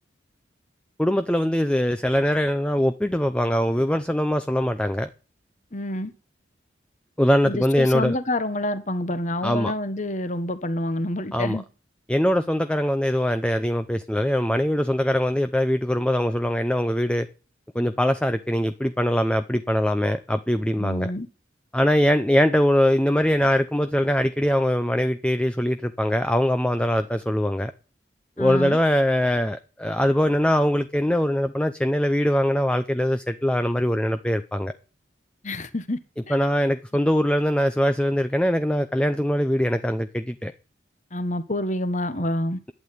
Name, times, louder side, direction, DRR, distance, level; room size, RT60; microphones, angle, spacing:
voice 1, 1.0-5.1 7.2-8.2 9.4-9.7 11.3-11.6 12.1-17.3 17.7-21.1 21.7-27.7 28.4-34.7 36.3-40.5, equal, 5° left, 0.6 m, -22 dB
voice 2, 5.7-6.1 7.4-11.6 20.8-21.3 28.4-28.8 35.4-36.0 36.3-36.4 41.1-42.6, left 1 dB, 40° left, 1.4 m, -28 dB
11.5 x 8.9 x 9.4 m
head